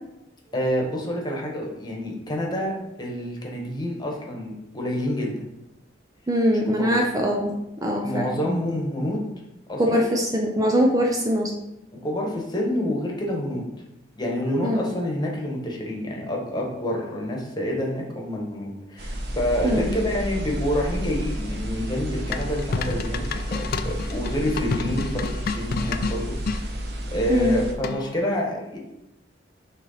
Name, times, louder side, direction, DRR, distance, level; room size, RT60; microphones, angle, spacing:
voice 1, 0.5-2.7 3.0-5.5 6.8-7.0 8.0-9.3 9.7-10.0 11.9-13.6 14.2-26.7 27.1-28.8, left 1 dB, 25° left, -1 dB, 1.3 m, -28 dB
voice 2, 6.3-7.5 7.8-8.3 9.8-11.5 14.6-14.9 19.6-19.9 27.3-27.6, equal, 20° right, 0 dB, 0.6 m, -22 dB
sound 1, 19.0-27.7, equal, 60° right, 1.1 m, -31 dB
sound 2, 22.3-26.6 27.8-28.2, left 4 dB, 50° left, 0.4 m, -30 dB
6.6 x 3.1 x 5.6 m, 0.90 s
head